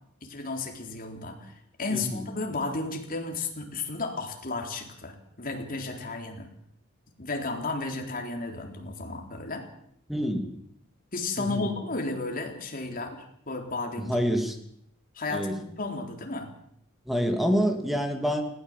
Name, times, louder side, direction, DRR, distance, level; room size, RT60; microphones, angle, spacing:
voice 1, 0.2-1.5 1.8-6.5 7.2-9.7 11.1-14.2 15.2-16.5, left 3 dB, 45° left, 3 dB, 3.8 m, -33 dB
voice 2, 1.9-2.2 10.1-10.4 11.4-11.7 14.1-14.6 15.3-15.6 17.1-18.4, equal, ahead, 4 dB, 2.8 m, -27 dB
20.5 x 17.0 x 7.5 m, 0.70 s
head